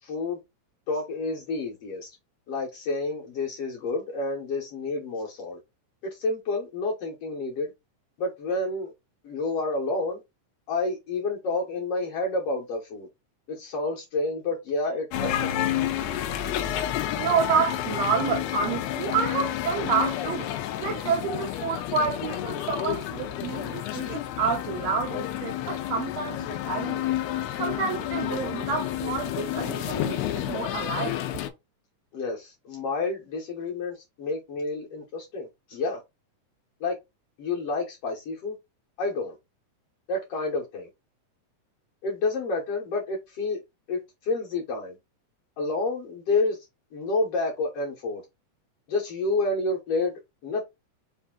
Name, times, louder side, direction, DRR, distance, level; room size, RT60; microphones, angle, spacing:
voice 1, 0.0-0.4 0.9-2.1 2.5-5.6 6.0-7.7 8.2-8.9 9.2-10.2 10.7-13.1 13.5-15.6 32.1-36.0 36.8-37.0 37.4-38.5 39.0-39.3 40.1-40.9 42.0-43.6 43.9-45.0 45.6-46.6 46.9-48.2 48.9-50.1 50.4-50.6, left 3 dB, 65° left, 1.6 m, -29 dB
sound 1, 15.1-31.5, left 12 dB, 85° left, 1.5 m, -30 dB
voice 2, 17.1-20.5 20.8-27.1 27.6-31.2, right 5 dB, 80° right, 1.6 m, -29 dB
5.0 x 2.7 x 3.6 m
omnidirectional pair, 3.6 m